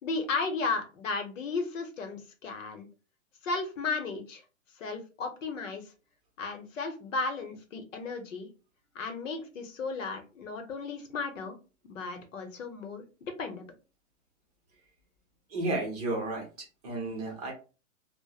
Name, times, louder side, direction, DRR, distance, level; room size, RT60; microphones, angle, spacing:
voice 1, 0.0-2.9 3.4-4.4 4.8-5.8 6.4-8.5 8.9-11.6 11.9-13.0 13.4-13.6, left 4 dB, 65° left, 6 dB, 0.8 m, -34 dB
voice 2, 15.5-17.5, right 2 dB, 30° right, 0 dB, 0.7 m, -33 dB
2.9 x 2.1 x 2.3 m, 0.33 s
hypercardioid pair, 160°, 41 cm